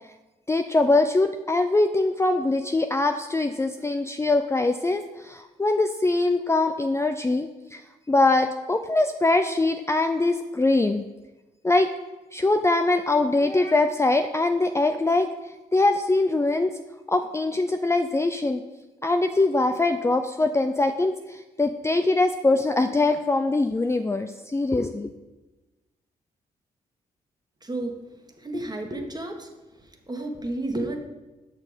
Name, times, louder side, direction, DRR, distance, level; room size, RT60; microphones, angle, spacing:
voice 1, 0.5-7.8 8.1-11.0 11.6-11.9 12.3-15.3 15.7-16.7 17.1-18.6 19.0-25.1, left 2 dB, 15° left, 7 dB, 0.5 m, -22 dB
voice 2, 27.6-28.1 28.4-29.5 29.8-31.0, right 1 dB, 25° right, 3 dB, 1.6 m, -32 dB
6.4 x 6.1 x 5.2 m, 1.1 s
hypercardioid pair, 45°, 17 cm